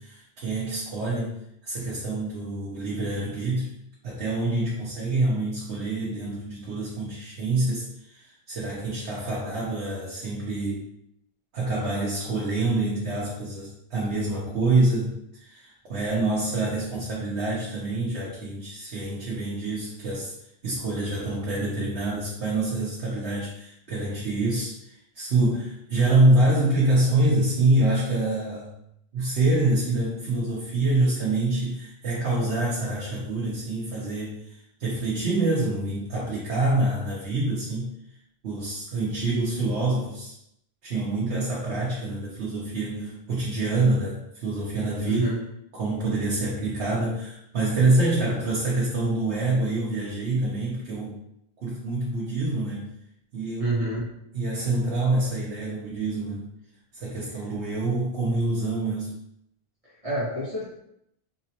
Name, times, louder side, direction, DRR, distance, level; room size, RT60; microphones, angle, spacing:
voice 1, 0.0-1.4 1.6-3.7 4.0-10.8 11.5-20.3 20.6-28.8 29.1-37.9 38.4-40.3 40.8-45.3 45.7-51.2 51.6-52.9 53.3-53.8 54.3-56.5 56.9-59.1, right 2 dB, 85° right, -6 dB, 1.2 m, -26 dB
voice 2, 45.0-45.4 53.6-54.0 59.8-60.7, right 1 dB, 35° right, -9 dB, 1.6 m, -28 dB
3.7 x 3.0 x 2.9 m, 0.77 s
omnidirectional pair, 1.1 m